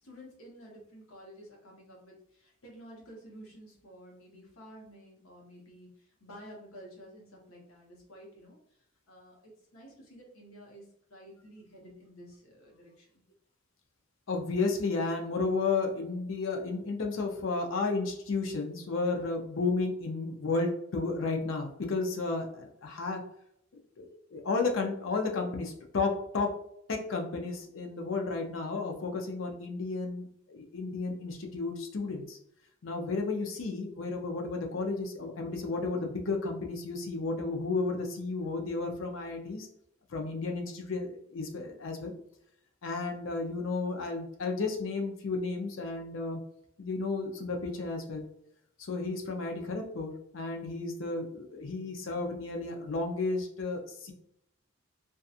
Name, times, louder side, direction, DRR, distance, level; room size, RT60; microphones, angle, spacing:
voice 1, 0.0-5.9 6.2-8.6 9.1-10.8 11.1-13.2, equal, 85° left, -1 dB, 0.9 m, -51 dB
voice 2, 14.3-23.2 24.0-26.5 26.9-32.4 32.8-39.7 40.1-42.1 42.8-46.4 46.8-48.2 48.9-54.1, left 3 dB, 65° left, 3 dB, 0.5 m, -33 dB
2.7 x 2.3 x 2.3 m, 0.74 s
head